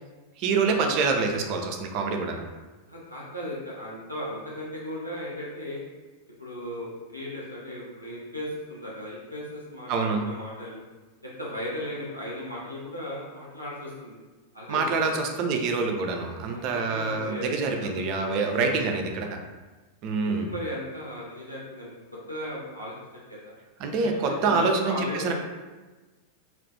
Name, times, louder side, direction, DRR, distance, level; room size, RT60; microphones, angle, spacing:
voice 1, 0.4-2.4 9.9-10.2 14.7-19.4 20.0-20.5 23.8-25.3, right 4 dB, 40° right, 4 dB, 0.3 m, -26 dB
voice 2, 2.9-5.8 6.4-10.8 11.2-14.2 14.5-15.1 16.5-18.0 20.2-21.9 22.3-22.9 23.3-23.5 24.3-25.3, equal, 90° left, -6 dB, 0.4 m, -36 dB
2.3 x 2.1 x 2.7 m, 1.2 s
figure-of-eight pair, 90°, 0 cm